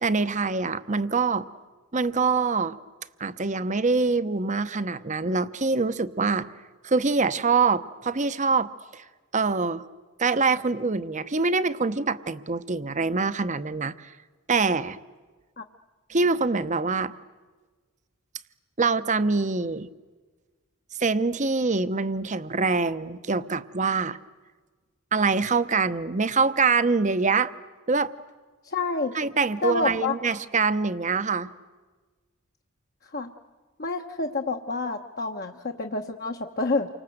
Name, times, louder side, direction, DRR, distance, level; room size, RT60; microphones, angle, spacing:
voice 1, 0.0-1.5 1.9-2.8 3.2-6.5 6.8-9.0 9.3-9.9 10.2-14.1 14.5-15.0 16.1-17.1 18.8-19.9 21.0-24.2 25.1-27.5 27.9-28.1 29.1-31.5, right 4 dB, 35° right, 13 dB, 0.9 m, -24 dB
voice 2, 28.6-29.2 29.6-30.1 33.0-33.3 33.8-36.9, left 3 dB, 45° left, 3 dB, 1.2 m, -28 dB
29.5 x 25.0 x 7.9 m, 1.4 s
head